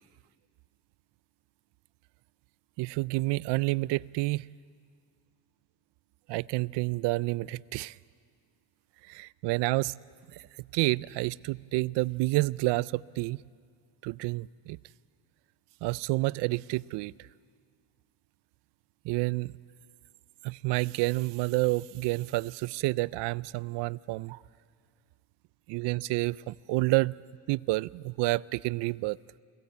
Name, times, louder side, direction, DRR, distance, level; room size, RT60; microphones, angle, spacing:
voice 1, 2.8-4.5 6.3-8.0 9.1-10.0 10.7-13.4 14.0-14.8 15.8-17.1 19.0-19.5 20.4-24.4 25.7-27.1 27.5-29.2, right 21 dB, 75° right, 0.5 m, -29 dB
29.0 x 17.5 x 8.3 m
cardioid pair, 150°, 42 cm